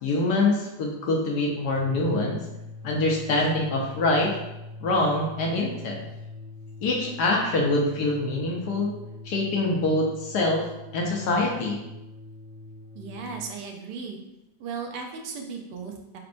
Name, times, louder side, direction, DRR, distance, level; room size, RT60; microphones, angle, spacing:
voice 1, 0.0-2.4 2.8-4.3 4.8-6.0 6.8-8.9 9.2-10.6 10.9-11.8, left 2 dB, 65° left, -1 dB, 1.3 m, -24 dB
sound 1, 1.6-13.5, left 2 dB, 40° right, 1.5 m, -42 dB
voice 2, 12.9-14.2 14.6-16.2, right 5 dB, 70° right, 2 dB, 1.2 m, -36 dB
4.4 x 4.0 x 2.6 m, 0.94 s
omnidirectional pair, 2.0 m